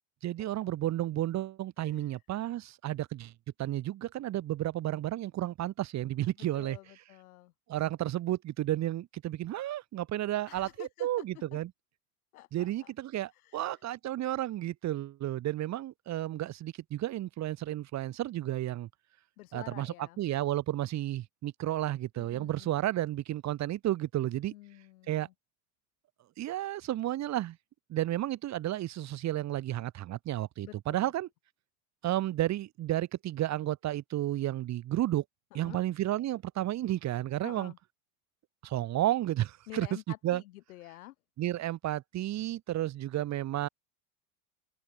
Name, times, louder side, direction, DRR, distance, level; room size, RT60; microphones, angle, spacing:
voice 1, 0.2-3.3 3.6-6.8 7.7-11.7 12.5-18.9 19.5-24.5 25.1-25.3 26.4-27.6 27.9-31.3 32.0-35.2 35.5-37.7 38.6-39.9 40.2-40.4 41.4-43.7, right 14 dB, 40° right, 2.2 m, -32 dB
voice 2, 1.8-2.2 6.5-7.5 10.5-11.3 12.3-12.9 13.3-13.9 19.4-20.2 22.2-22.7 24.5-25.3 30.6-31.1 35.5-35.8 37.4-37.8 39.7-41.1, left 17 dB, 80° left, 4.3 m, -49 dB
supercardioid pair, 120°, 43 cm